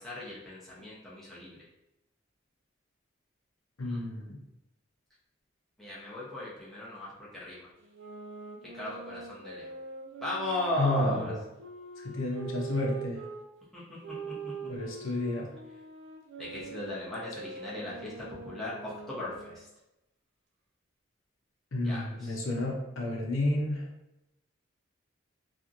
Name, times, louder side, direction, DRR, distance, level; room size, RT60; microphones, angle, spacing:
voice 1, 0.0-1.6 3.8-4.0 5.8-7.7 8.7-9.7 10.2-11.3 13.7-13.8 14.3-14.5 16.4-19.7 21.8-22.4, left 1 dB, ahead, -8 dB, 0.6 m, -37 dB
voice 2, 3.8-4.4 10.8-11.4 12.0-13.2 14.7-15.5 21.7-23.9, left 1 dB, 85° left, -1 dB, 0.6 m, -31 dB
sound 1, 7.8-13.4 14.0-19.6, right 4 dB, 65° right, 0.4 m, -43 dB
2.8 x 2.4 x 2.5 m, 0.91 s
head